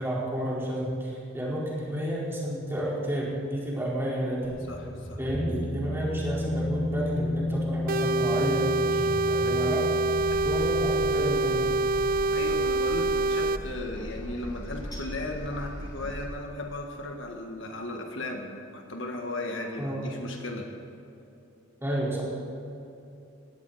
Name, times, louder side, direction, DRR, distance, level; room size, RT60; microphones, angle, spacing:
voice 1, 0.0-4.5 5.2-9.9 10.4-11.7 19.8-20.1 21.8-22.2, right 1 dB, 10° right, -7 dB, 4.6 m, -31 dB
sound 1, 4.4-11.9, left 1 dB, 85° left, 3.6 m, -33 dB
voice 2, 4.7-5.2 9.4-9.5 10.3-10.4 12.3-20.7, left 1 dB, 65° left, 2 dB, 1.7 m, -36 dB
sound 2, 7.9-13.6, right 2 dB, 45° right, 0.4 m, -26 dB
sound 3, 10.2-16.3, equal, 20° left, 2.2 m, -39 dB
20.5 x 16.0 x 4.3 m, 2.8 s
head